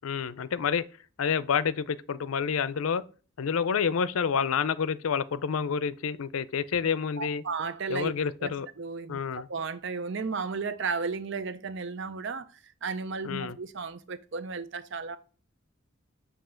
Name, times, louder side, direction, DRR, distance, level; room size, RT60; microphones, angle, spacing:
voice 1, 0.0-0.8 1.2-3.0 3.4-7.4 7.9-8.7 9.1-9.5 13.2-13.6, left 6 dB, 80° left, 0.5 m, -28 dB
voice 2, 7.2-8.1 8.4-12.5 12.8-15.2, right 4 dB, 55° right, 0.6 m, -34 dB
7.6 x 2.8 x 5.7 m
head